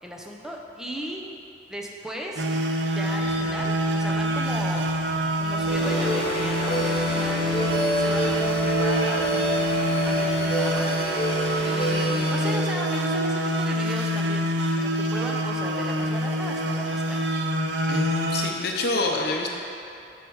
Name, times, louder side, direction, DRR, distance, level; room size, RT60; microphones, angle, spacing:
voice 1, 0.0-1.3 1.7-2.4 2.9-4.9 5.4-10.9 11.6-14.5 14.8-17.3, equal, 5° right, 0 dB, 0.6 m, -36 dB
sound 1, 2.4-18.5, equal, 75° right, 0.5 m, -26 dB
Aircraft, 3.0-12.5, equal, 30° right, 1.8 m, -49 dB
sound 2, 5.7-12.5, equal, 35° left, 1.7 m, -27 dB
voice 2, 17.9-19.5, left 2 dB, 60° left, 1 dB, 0.7 m, -26 dB
6.5 x 6.3 x 4.7 m, 2.6 s
head